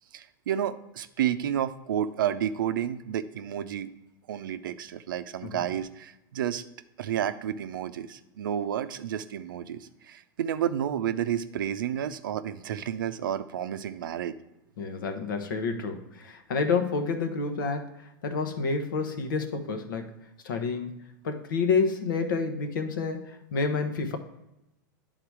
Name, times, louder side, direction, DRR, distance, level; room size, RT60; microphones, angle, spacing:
voice 1, 0.1-3.9 4.3-6.6 7.0-14.4, right 10 dB, 90° right, 11 dB, 0.5 m, -31 dB
voice 2, 14.8-20.1 20.4-24.2, left 4 dB, 85° left, 6 dB, 1.1 m, -29 dB
10.0 x 3.9 x 4.7 m, 0.90 s
hypercardioid pair, 120°, 11 cm